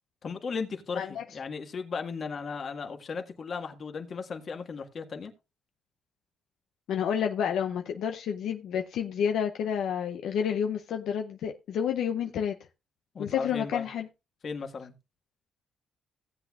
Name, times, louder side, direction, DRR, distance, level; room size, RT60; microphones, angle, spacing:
voice 1, 0.2-5.3 13.1-13.9 14.4-14.9, left 5 dB, 50° left, 1.7 m, -36 dB
voice 2, 6.9-12.6 13.2-14.1, left 8 dB, 80° left, 0.7 m, -30 dB
17.0 x 7.9 x 2.4 m
cardioid pair, 90°, 0 cm